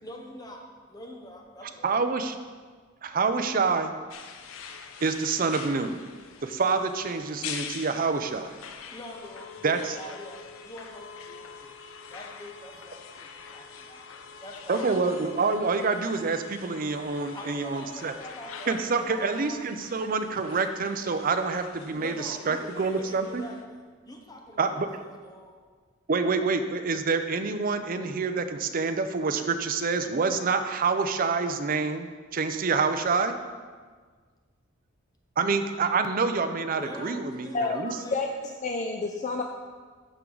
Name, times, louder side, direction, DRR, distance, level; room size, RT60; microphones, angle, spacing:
voice 1, 0.0-0.6 0.9-2.0 8.9-11.8 12.1-14.1 14.4-14.9 17.3-19.8 21.9-25.6 36.7-38.3, left 1 dB, 20° left, 1 dB, 0.8 m, -44 dB
voice 2, 1.8-2.4 3.0-3.9 5.0-6.0 6.4-8.5 9.6-9.8 14.7-18.1 18.7-23.4 24.6-24.9 26.1-32.1 32.3-33.3 35.4-37.9, right 4 dB, 45° right, 8 dB, 0.5 m, -27 dB
sound 1, 4.1-23.7, left 6 dB, 80° left, 0.6 m, -44 dB
voice 3, 38.1-39.4, left 3 dB, 35° left, 3 dB, 0.4 m, -29 dB
13.0 x 4.6 x 3.9 m, 1.5 s
head